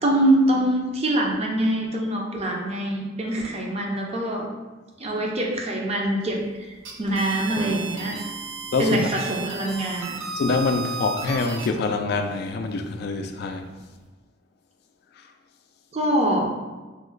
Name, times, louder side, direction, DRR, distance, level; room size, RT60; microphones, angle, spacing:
voice 1, 0.0-4.5 5.0-6.4 7.0-8.2 8.8-10.2 15.9-16.5, right 1 dB, 35° right, -1 dB, 0.5 m, -24 dB
sound 1, 6.7-11.7, right 3 dB, 85° right, 0.6 m, -34 dB
Drum, 7.6-9.6, equal, 25° left, 0.6 m, -40 dB
voice 2, 10.4-13.7, left 3 dB, 55° left, 6 dB, 0.3 m, -25 dB
3.0 x 2.1 x 3.8 m, 1.2 s
head